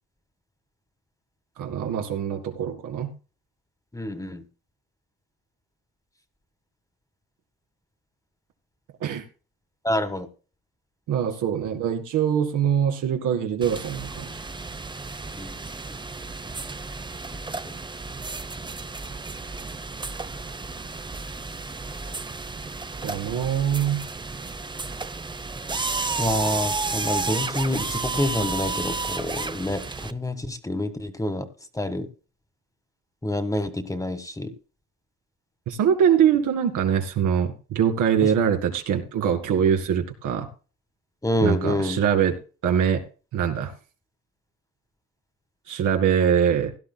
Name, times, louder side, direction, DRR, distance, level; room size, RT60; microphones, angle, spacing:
voice 1, 1.6-3.1 9.0-9.2 11.1-14.3 23.0-24.0 35.7-40.5 41.4-42.3 42.6-43.0 43.3-43.7 45.7-46.7, right 8 dB, 85° right, 4 dB, 2.2 m, -23 dB
voice 2, 3.9-4.4 9.8-10.3 15.4-15.5 26.2-31.5 31.7-32.1 33.2-34.5 38.2-38.3 41.2-42.0, left 1 dB, 10° left, 10 dB, 1.5 m, -27 dB
sound 1, 13.6-30.1, right 3 dB, 15° right, 0.6 m, -32 dB
16.5 x 12.0 x 2.2 m, 0.35 s
cardioid pair, 90°, 30 cm